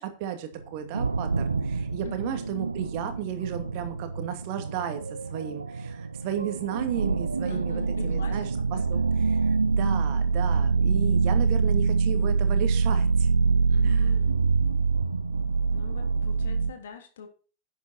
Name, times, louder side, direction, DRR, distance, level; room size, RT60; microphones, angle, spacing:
voice 1, 0.0-5.0 5.3-13.3 13.8-14.1, right 10 dB, 45° right, 7 dB, 2.4 m, -34 dB
sound 1, 0.6-16.7, right 5 dB, 80° right, 0.8 m, -25 dB
voice 2, 2.0-2.6 7.4-9.1 13.7-14.4 15.7-17.3, left 7 dB, 60° left, 5 dB, 3.1 m, -44 dB
11.5 x 9.0 x 4.4 m, 0.36 s
figure-of-eight pair, 90°, 0 cm